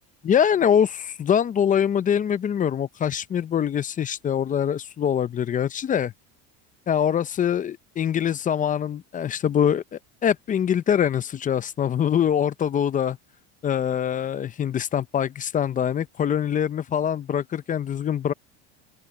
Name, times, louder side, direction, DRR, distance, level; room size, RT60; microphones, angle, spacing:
voice 1, 0.2-6.1 6.9-13.2 13.6-18.3, left 8 dB, 25° left, 0.6 m, -24 dB
supercardioid pair, 130°, 34 cm